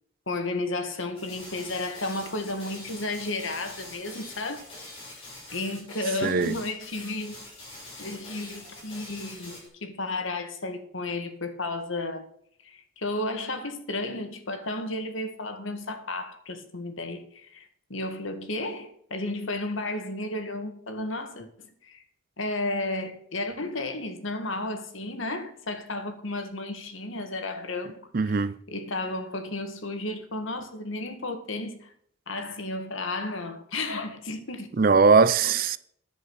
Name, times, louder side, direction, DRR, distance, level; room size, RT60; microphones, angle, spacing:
voice 1, 0.3-4.7 5.5-7.5 8.0-12.3 12.6-22.0 22.4-31.9 32.3-34.7 35.4-35.5, left 2 dB, 75° left, 1.9 m, -33 dB
sound 1, 1.1-9.7, left 2 dB, 30° left, 6.4 m, -44 dB
voice 2, 6.2-6.5 28.1-28.5 34.8-35.8, right 4 dB, 45° right, 0.5 m, -20 dB
10.5 x 7.5 x 6.5 m
head